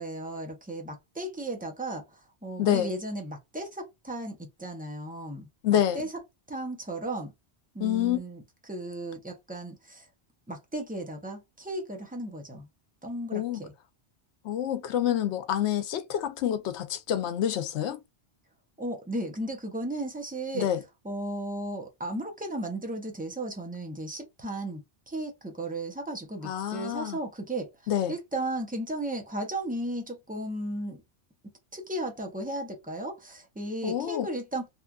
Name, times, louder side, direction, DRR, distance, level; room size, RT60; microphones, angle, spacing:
voice 1, 0.0-5.5 5.9-6.1 6.5-7.3 7.7-10.1 10.5-12.7 13.0-13.7 18.8-20.7 21.0-24.8 25.1-27.7 28.1-31.0 31.7-34.7, right 1 dB, 10° right, 0.5 m, -35 dB
voice 2, 2.6-2.9 5.6-6.1 7.8-8.2 13.3-13.6 14.4-18.0 20.5-20.8 26.4-27.2 27.9-28.1 33.8-34.3, left 10 dB, 85° left, 0.9 m, -27 dB
2.9 x 2.4 x 2.2 m
omnidirectional pair, 1.1 m